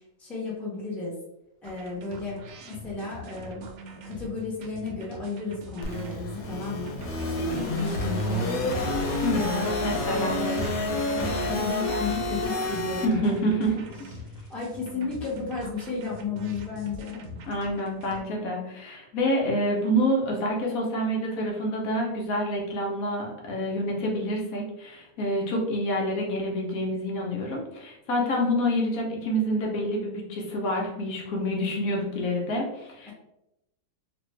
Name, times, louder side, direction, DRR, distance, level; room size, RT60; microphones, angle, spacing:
voice 1, 0.2-1.1 1.6-2.4 2.7-6.9 7.2-8.9 9.3-10.6 11.1-13.8 14.3-17.3, left 4 dB, ahead, -5 dB, 0.6 m, -34 dB
sound 1, 1.6-18.2, equal, 85° right, 1.1 m, -43 dB
sound 2, 5.8-13.1, left 1 dB, 90° left, 1.3 m, -28 dB
voice 2, 9.8-10.4 13.0-13.8 17.5-33.1, equal, 70° left, -1 dB, 1.1 m, -27 dB
3.1 x 2.5 x 3.1 m, 0.87 s
omnidirectional pair, 1.6 m